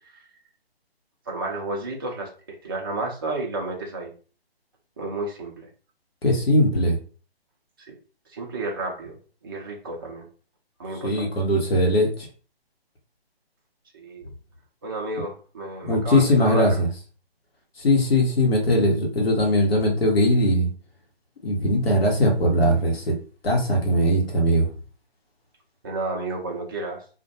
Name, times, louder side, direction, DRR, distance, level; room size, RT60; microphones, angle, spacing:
voice 1, 1.3-2.3 2.6-4.1 5.0-5.7 8.3-9.2 9.4-10.2 10.8-11.3 13.9-14.3 14.8-16.8 25.8-27.0, right 2 dB, 20° right, -1 dB, 0.4 m, -31 dB
voice 2, 6.2-7.0 11.0-12.3 15.8-16.9 17.8-20.7 21.4-23.1 23.4-24.7, left 1 dB, 70° left, 0 dB, 1.1 m, -20 dB
2.4 x 2.2 x 2.7 m, 0.39 s
figure-of-eight pair, 140°, 31 cm